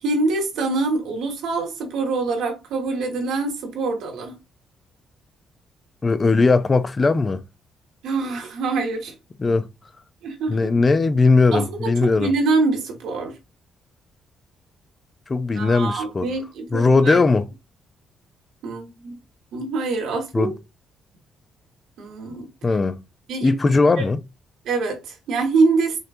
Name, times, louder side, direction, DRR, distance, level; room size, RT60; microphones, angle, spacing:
voice 1, 0.0-4.4 8.0-9.1 10.2-10.8 11.5-11.9 12.2-13.4 15.5-17.2 18.6-19.2 19.5-20.5 22.0-22.5 23.3-23.6 23.9-24.0 24.6-26.0, right 3 dB, 80° right, 1.4 m, -24 dB
voice 2, 6.0-7.4 9.4-9.7 10.5-12.3 15.3-16.3 16.7-17.5 20.3-20.5 22.6-23.0 23.4-24.2, left 3 dB, 30° left, 0.4 m, -18 dB
6.3 x 2.2 x 2.6 m
cardioid pair, 90°, 0 cm